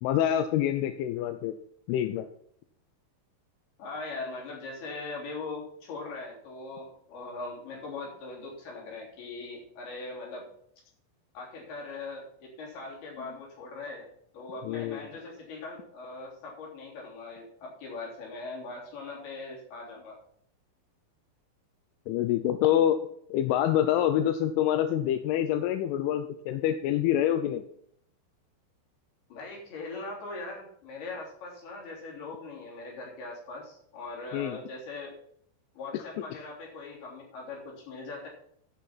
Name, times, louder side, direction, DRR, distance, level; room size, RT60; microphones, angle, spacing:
voice 1, 0.0-1.6 1.9-2.3 14.6-15.1 22.1-23.0 23.3-27.6 34.3-34.6, left 11 dB, 80° left, 9 dB, 2.9 m, -26 dB
voice 2, 3.8-10.5 11.3-14.1 14.3-20.2 29.3-35.1 35.7-38.3, left 3 dB, 50° left, -2 dB, 5.1 m, -40 dB
13.0 x 5.6 x 5.8 m, 0.67 s
omnidirectional pair, 6.0 m